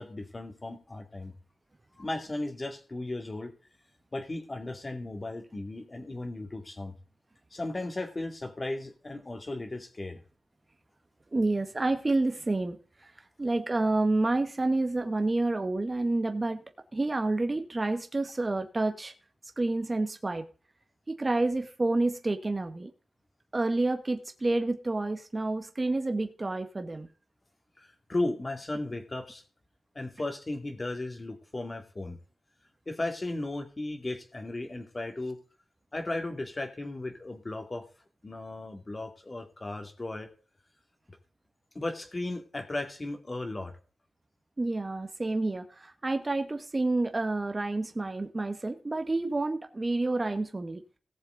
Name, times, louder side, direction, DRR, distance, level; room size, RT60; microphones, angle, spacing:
voice 1, 0.0-1.3 2.0-3.5 4.1-6.9 7.5-10.2 27.8-29.4 29.9-32.2 32.9-35.4 35.9-37.8 38.2-40.3 41.7-43.7, left 2 dB, 30° left, 5 dB, 2.4 m, -35 dB
voice 2, 11.3-12.8 13.4-16.6 16.9-19.1 19.6-20.5 21.1-22.9 23.5-27.1 44.6-50.8, right 2 dB, 30° right, 7 dB, 1.3 m, -29 dB
18.0 x 7.3 x 3.9 m, 0.39 s
wide cardioid pair, 95°, 0 cm